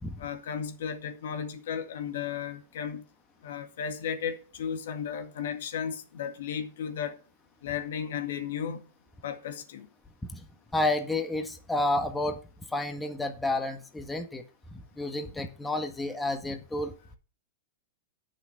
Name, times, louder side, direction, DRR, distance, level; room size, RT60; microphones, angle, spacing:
voice 1, 0.2-3.0 3.4-7.2 7.6-8.8 9.2-9.9, left 8 dB, 70° left, 2.0 m, -34 dB
voice 2, 10.7-12.4 12.7-14.4 15.0-17.2, left 2 dB, 10° left, 1.6 m, -30 dB
11.0 x 6.5 x 6.0 m
hypercardioid pair, 105°, 0 cm